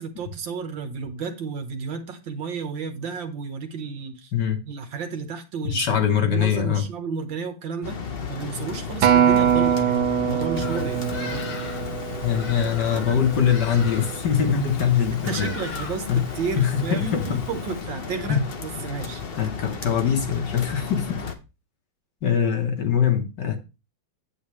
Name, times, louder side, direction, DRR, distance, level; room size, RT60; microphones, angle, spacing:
voice 1, 0.0-4.3 4.7-8.0 8.3-11.5 15.1-19.2, right 5 dB, 65° right, 1.9 m, -32 dB
voice 2, 5.6-6.8 12.2-15.5 16.1-16.2 16.6-17.4 18.3-18.4 19.4-21.2 22.2-23.6, left 8 dB, 60° left, 1.7 m, -22 dB
sound 1, 7.8-21.4, left 6 dB, 40° left, 0.8 m, -34 dB
Acoustic guitar, 9.0-13.4 14.1-14.2, right 9 dB, 85° right, 1.7 m, -23 dB
Bird vocalization bird call bird song, 10.5-17.8, left 4 dB, 90° left, 2.5 m, -40 dB
8.8 x 8.4 x 3.2 m
omnidirectional pair, 2.3 m